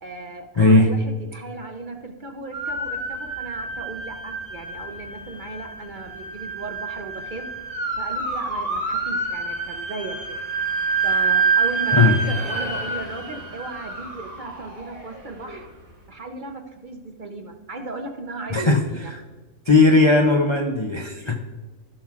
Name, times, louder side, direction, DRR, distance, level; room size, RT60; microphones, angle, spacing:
voice 1, 0.0-7.5 8.0-10.4 11.0-15.7 16.1-19.1 21.2-21.4, right 3 dB, 45° right, 3 dB, 0.7 m, -36 dB
voice 2, 0.6-0.9 11.9-12.2 18.5-18.8 19.7-21.4, left 3 dB, 40° left, 2 dB, 0.4 m, -17 dB
sound 1, 2.5-15.6, right 4 dB, 25° right, 1.5 m, -27 dB
15.5 x 6.0 x 2.4 m, 1.2 s
omnidirectional pair, 1.4 m